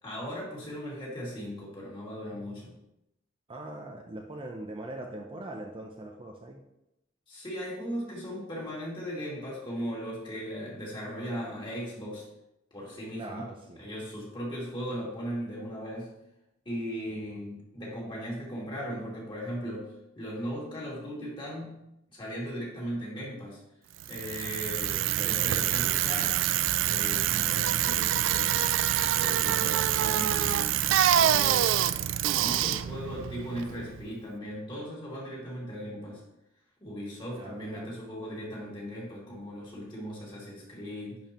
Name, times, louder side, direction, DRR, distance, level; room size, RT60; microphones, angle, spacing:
voice 1, 0.0-2.7 7.3-12.2 12.7-13.5 13.8-16.1 16.7-21.8 22.1-23.6 24.1-28.5 29.1-30.8 31.2-31.9 32.4-36.2 36.8-41.2, equal, 25° left, -5 dB, 2.4 m, -38 dB
voice 2, 3.5-6.6 13.1-13.8 17.3-17.4 25.2-25.3 32.3-32.8 37.4-37.9, right 1 dB, 25° right, 1 dB, 0.6 m, -42 dB
Bicycle, 24.0-34.1, right 11 dB, 70° right, 0.3 m, -26 dB
10.5 x 4.6 x 3.0 m, 0.86 s
head